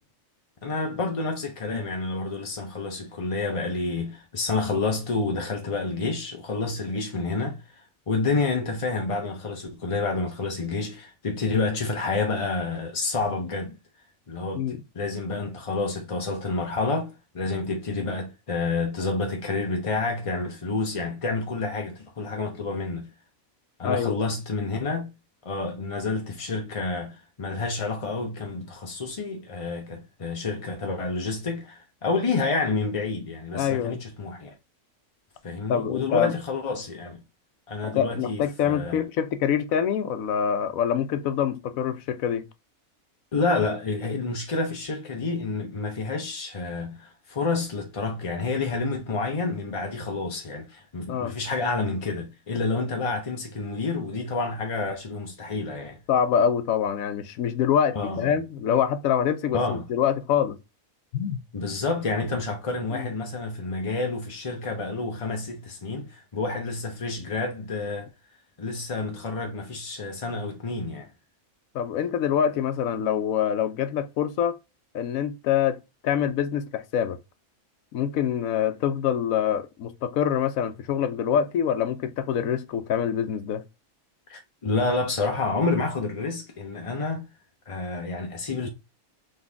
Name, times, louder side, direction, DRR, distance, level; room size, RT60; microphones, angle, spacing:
voice 1, 0.6-13.8 14.3-23.1 23.8-25.1 25.4-34.5 35.4-37.2 37.7-39.0 43.3-56.0 57.9-58.4 59.5-59.8 61.5-68.1 68.6-71.1 84.3-87.3 87.7-88.7, left 3 dB, 40° left, 0.5 m, -29 dB
voice 2, 23.8-24.2 33.5-34.0 35.7-36.3 37.8-42.4 51.1-51.4 56.1-60.6 61.1-61.4 62.9-63.1 71.7-74.6 74.9-77.2 77.9-83.6, left 8 dB, 75° left, 1.1 m, -25 dB
4.0 x 3.2 x 3.3 m
omnidirectional pair, 1.5 m